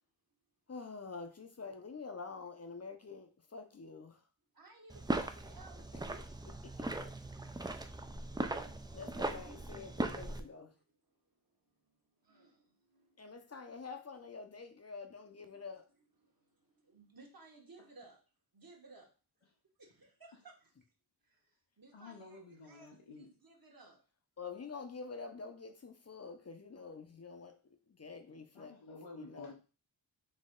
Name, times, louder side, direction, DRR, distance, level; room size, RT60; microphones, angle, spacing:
voice 1, 0.7-4.2 8.9-10.7 13.2-15.8 24.4-27.6 28.0-28.7 29.2-29.5, left 4 dB, 35° left, 0.6 m, -47 dB
voice 2, 4.5-6.3 6.9-11.2 11.5-13.4 13.7-13.8 15.5-15.6 16.2-18.2 18.5-19.1 19.8-20.5 21.2-24.0, right 3 dB, 45° right, 1.3 m, -60 dB
sound 1, 4.9-10.4, right 2 dB, 10° right, 0.3 m, -39 dB
voice 3, 21.9-23.3 28.3-29.5, left 3 dB, 85° left, 0.9 m, -52 dB
4.1 x 3.1 x 3.7 m
wide cardioid pair, 90°, 47 cm